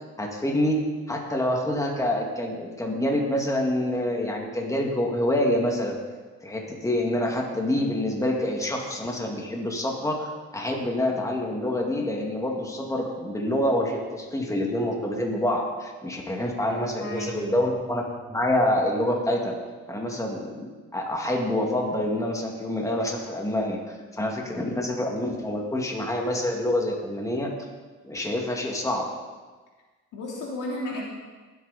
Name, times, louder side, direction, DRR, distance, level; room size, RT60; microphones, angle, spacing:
voice 1, 0.2-6.0 6.4-19.5 19.9-27.5 28.0-29.1, left 1 dB, 10° left, 0 dB, 2.1 m, -27 dB
voice 2, 16.7-17.5 30.1-31.0, left 1 dB, 90° left, -3 dB, 3.6 m, -34 dB
19.0 x 8.5 x 4.2 m, 1.4 s
cardioid pair, 90°, 30 cm